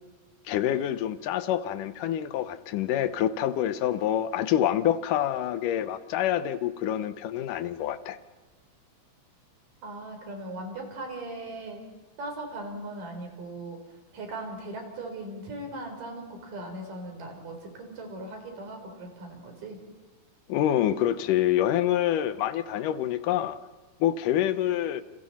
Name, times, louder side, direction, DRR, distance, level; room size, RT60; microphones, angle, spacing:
voice 1, 0.5-8.2 20.5-23.6 24.0-25.0, left 11 dB, 80° left, 13 dB, 2.4 m, -26 dB
voice 2, 9.8-11.8 12.2-13.8 14.1-19.8, right 2 dB, 75° right, 3 dB, 5.7 m, -39 dB
29.5 x 28.0 x 4.2 m, 1.3 s
omnidirectional pair, 3.8 m